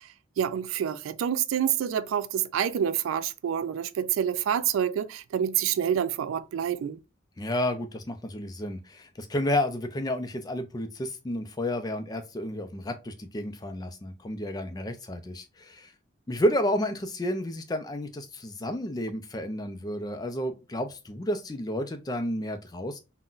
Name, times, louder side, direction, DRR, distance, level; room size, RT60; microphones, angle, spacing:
voice 1, 0.4-7.0, right 9 dB, 90° right, 0.3 m, -27 dB
voice 2, 7.4-15.9 16.3-23.0, left 1 dB, 20° left, 0.4 m, -31 dB
3.7 x 2.1 x 2.3 m
head